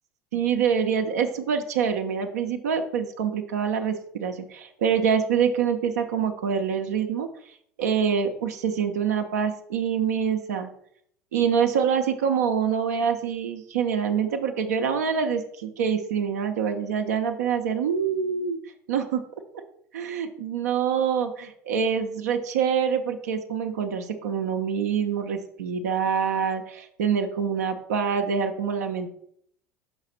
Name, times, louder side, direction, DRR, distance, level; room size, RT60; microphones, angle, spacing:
voice 1, 0.3-7.3 7.8-10.7 11.3-18.6 18.9-19.2 19.9-29.1, right 7 dB, 70° right, 5 dB, 0.7 m, -25 dB
5.6 x 4.0 x 5.7 m, 0.67 s
figure-of-eight pair, 70°, 9 cm